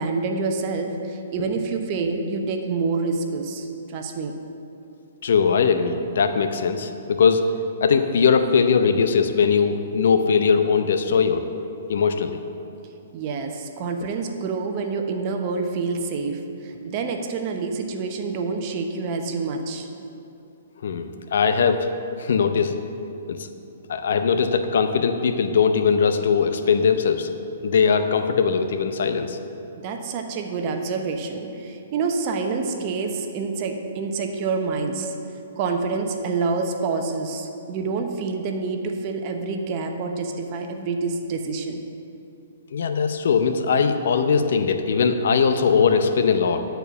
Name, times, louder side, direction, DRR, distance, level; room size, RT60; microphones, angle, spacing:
voice 1, 0.0-4.3 13.1-19.9 29.8-35.1 35.6-41.8, right 4 dB, 40° right, 4 dB, 0.9 m, -27 dB
voice 2, 5.2-7.4 7.8-11.4 11.9-12.4 20.8-21.9 22.2-22.7 23.3-23.5 23.9-27.3 27.6-29.4 42.7-46.6, left 6 dB, 70° left, 8 dB, 0.6 m, -20 dB
10.5 x 4.5 x 6.9 m, 2.8 s
hypercardioid pair, 140°, 0 cm